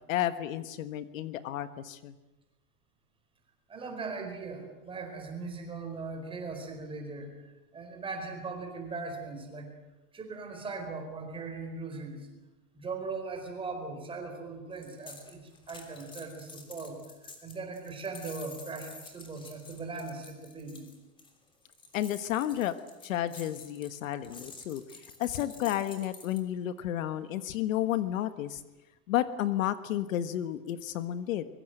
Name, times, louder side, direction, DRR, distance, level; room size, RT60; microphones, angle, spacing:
voice 1, 0.1-2.1 21.9-22.7 23.0-24.8 25.2-28.6 29.1-31.5, left 12 dB, 60° left, 11 dB, 1.5 m, -31 dB
voice 2, 3.7-7.3 7.7-9.7 10.1-12.2 12.7-15.4 15.7-17.0 17.4-20.9, right 4 dB, 10° right, 4 dB, 4.6 m, -39 dB
sound 1, 14.8-26.4, left 3 dB, 10° left, 3.2 m, -50 dB
24.0 x 23.0 x 7.9 m, 1.1 s
supercardioid pair, 165°, 46 cm